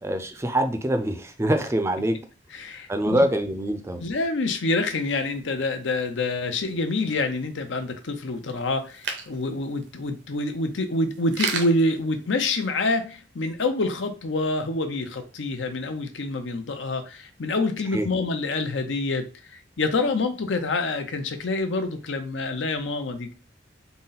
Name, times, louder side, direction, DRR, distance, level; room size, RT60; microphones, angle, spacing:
voice 1, 0.0-2.2 2.9-4.0 17.9-18.1, right 1 dB, 15° right, 0.4 m, -24 dB
voice 2, 2.5-3.2 4.0-23.3, left 2 dB, 90° left, 0.7 m, -27 dB
sound 1, 4.8-13.0, right 5 dB, 75° right, 0.7 m, -38 dB
3.9 x 2.1 x 3.9 m
head